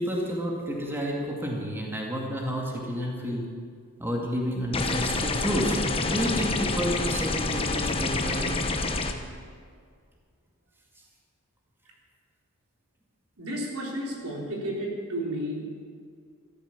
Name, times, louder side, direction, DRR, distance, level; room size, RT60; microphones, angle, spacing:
voice 1, 0.0-3.5 4.0-8.6, equal, 10° right, -2 dB, 2.2 m, -30 dB
sound 1, 4.7-9.1, left 3 dB, 25° left, 1.1 m, -28 dB
voice 2, 13.4-15.6, right 1 dB, 80° right, -2 dB, 3.7 m, -32 dB
14.0 x 13.0 x 7.2 m, 2.1 s
head